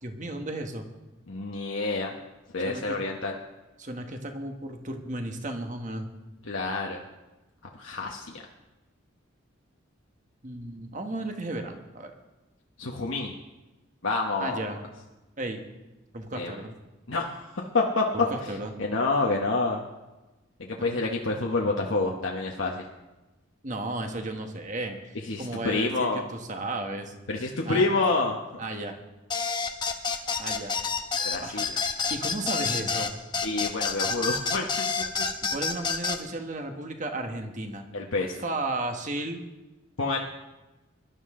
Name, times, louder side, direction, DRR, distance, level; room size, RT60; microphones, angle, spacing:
voice 1, 0.0-0.9 2.6-3.0 3.8-6.1 10.4-12.1 14.4-14.8 15.4-15.6 16.1-16.7 18.1-18.7 23.6-27.1 27.6-27.8 28.6-29.0 30.4-30.7 31.4-31.6 32.1-33.1 35.5-37.8 38.4-39.4, right 2 dB, 35° right, 5 dB, 1.4 m, -34 dB
voice 2, 1.3-2.1 2.5-3.4 6.5-7.0 7.7-8.4 12.8-13.3 14.0-14.7 16.3-16.6 17.1-18.0 18.4-19.8 20.6-22.9 25.2-26.2 27.3-28.4 31.2-31.8 33.4-34.7 35.2-35.3 37.9-38.4 40.0-40.2, left 3 dB, 70° left, 0 dB, 1.1 m, -28 dB
sound 1, 29.3-36.2, left 5 dB, 20° left, 0.9 m, -28 dB
21.5 x 12.0 x 3.8 m, 1.1 s
head